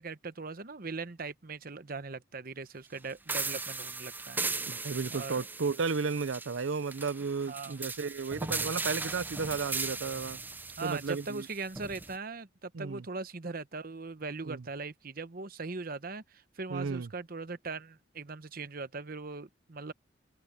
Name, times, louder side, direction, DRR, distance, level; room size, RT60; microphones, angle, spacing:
voice 1, 0.0-4.4 4.8-5.4 7.5-7.9 10.8-19.9, right 4 dB, 50° right, 1.0 m, -40 dB
sound 1, 3.3-12.1, right 3 dB, 10° right, 0.5 m, -38 dB
voice 2, 4.6-10.4 10.8-11.5 12.7-13.0 14.5-14.6 16.7-17.1, right 4 dB, 85° right, 0.6 m, -33 dB
open air
head